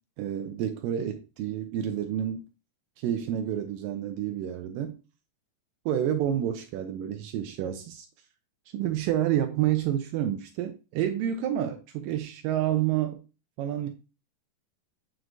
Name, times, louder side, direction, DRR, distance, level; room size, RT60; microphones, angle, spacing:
voice 1, 0.2-2.4 3.0-5.0 5.9-8.1 8.7-13.2 13.6-13.9, right 11 dB, 80° right, 2.3 m, -29 dB
8.9 x 4.6 x 2.6 m
omnidirectional pair, 4.0 m